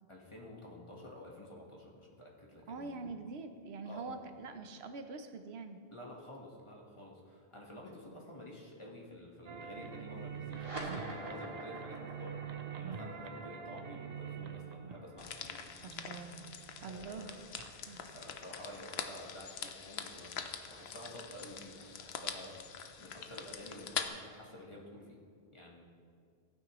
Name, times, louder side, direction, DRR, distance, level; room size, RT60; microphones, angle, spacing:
voice 1, 0.1-3.0 3.8-4.2 5.9-12.4 12.8-15.6 16.8-17.4 18.0-22.6 23.0-25.2 25.5-25.8, left 1 dB, 30° left, -2 dB, 1.4 m, -50 dB
voice 2, 2.7-5.8 15.8-16.4 16.8-17.5 17.9-18.0, right 4 dB, 75° right, 8 dB, 1.0 m, -44 dB
sound 1, 9.5-18.4, right 7 dB, 50° right, 0.6 m, -45 dB
sound 2, 10.4-17.3, right 1 dB, 30° right, 2.5 m, -48 dB
sound 3, 15.2-24.1, left 7 dB, 75° left, 0.9 m, -44 dB
15.0 x 9.1 x 3.1 m, 2.2 s
omnidirectional pair, 1.1 m